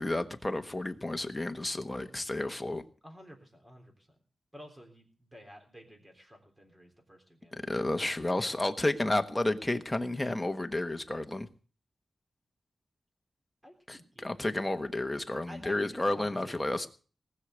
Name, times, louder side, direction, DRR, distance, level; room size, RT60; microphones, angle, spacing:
voice 1, 0.0-2.8 7.5-11.5 13.9-16.9, left 2 dB, 15° left, 7 dB, 1.2 m, -31 dB
voice 2, 3.0-4.1 4.5-7.6 13.6-14.3 14.7-14.8 15.5-16.5, equal, 15° right, 3 dB, 3.7 m, -51 dB
19.0 x 6.5 x 8.1 m, 0.40 s
wide cardioid pair, 125°, 0 cm